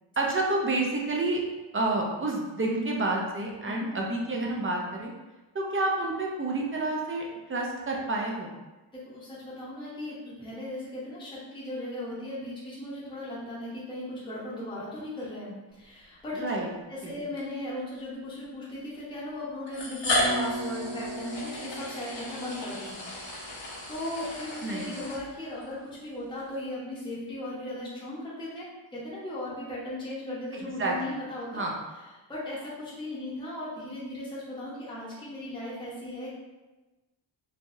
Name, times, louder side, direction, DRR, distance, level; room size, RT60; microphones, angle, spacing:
voice 1, 0.2-1.4 1.7-5.1 5.5-7.2 7.5-8.5 16.4-16.7 17.0-17.1 24.6-25.0 30.8-30.9 31.5-31.7, right 2 dB, 30° right, -1 dB, 0.4 m, -29 dB
voice 2, 8.9-16.6 16.9-23.1 23.3-31.6 32.3-36.3, left 1 dB, 10° left, -8 dB, 0.7 m, -37 dB
sound 1, 16.2-16.3 17.4-17.5 18.6-18.7 19.7-25.7, left 1 dB, 65° left, 0.8 m, -33 dB
sound 2, 20.2-24.0, right 2 dB, 85° right, 1.1 m, -39 dB
3.2 x 2.2 x 2.6 m, 1.1 s
wide cardioid pair, 140°, 48 cm